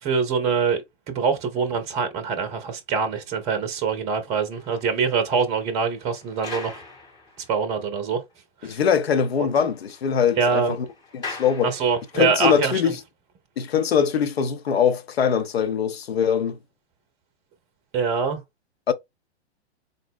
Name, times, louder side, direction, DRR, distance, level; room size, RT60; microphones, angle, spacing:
voice 1, 0.0-6.8 7.5-8.2 8.6-8.8 9.4-9.5 10.4-10.8 11.6-12.7 17.9-18.4, right 5 dB, 20° right, 0.6 m, -24 dB
sound 1, 4.3-7.8 8.3-8.4 8.8-8.9 9.1-12.4, left 4 dB, 10° left, 0.9 m, -42 dB
voice 2, 8.6-10.9 11.1-11.7 12.1-13.0 13.6-16.6 18.9-19.0, left 7 dB, 65° left, 0.6 m, -22 dB
3.8 x 2.0 x 3.5 m
figure-of-eight pair, 105°, 34 cm